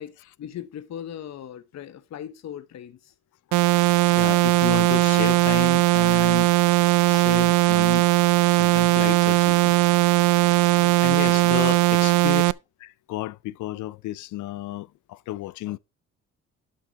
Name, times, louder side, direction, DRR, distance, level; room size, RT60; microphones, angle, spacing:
voice 1, 0.0-3.1 10.8-11.7 12.0-12.1, left 10 dB, 60° left, 0.9 m, -39 dB
sound 1, 3.5-12.5, right 21 dB, 85° right, 0.5 m, -19 dB
voice 2, 4.2-6.5 7.0-8.1 8.5-10.0 10.7-12.4 12.8-15.8, left 17 dB, 75° left, 0.5 m, -32 dB
11.0 x 5.9 x 4.0 m
cardioid pair, 90°, 30 cm